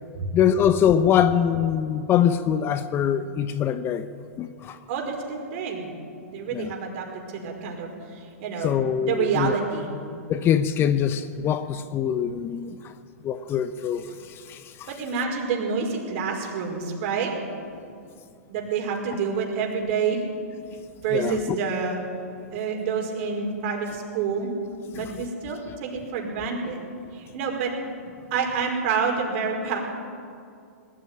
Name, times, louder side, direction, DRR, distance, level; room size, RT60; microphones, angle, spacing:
voice 1, 0.3-4.1 4.4-4.8 6.5-6.7 8.6-9.6 10.3-12.8 13.2-14.0 14.5-14.6 21.1-21.6 24.9-25.1, left 9 dB, 30° left, 0.8 m, -23 dB
voice 2, 4.9-5.9 6.3-9.9 14.1-14.2 14.9-17.3 18.5-20.2 21.0-22.0 22.5-24.5 24.9-26.8 27.1-27.7 28.3-29.8, right 6 dB, 50° right, 5.2 m, -28 dB
20.0 x 14.0 x 9.8 m
hypercardioid pair, 125°, 8 cm